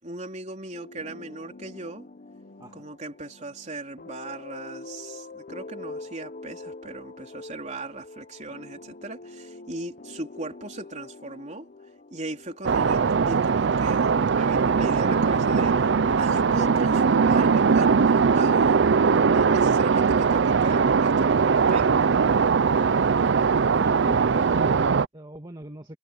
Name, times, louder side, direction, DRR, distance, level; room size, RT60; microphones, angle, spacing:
voice 1, 0.0-2.1 2.7-11.7 12.1-22.1, right 2 dB, 40° right, 3.7 m, -38 dB
sound 1, 0.7-14.0 14.5-19.6, left 3 dB, 45° left, 0.8 m, -44 dB
sound 2, 12.6-25.1, right 5 dB, 65° right, 0.5 m, -20 dB
voice 2, 23.8-26.0, equal, 25° right, 1.6 m, -40 dB
head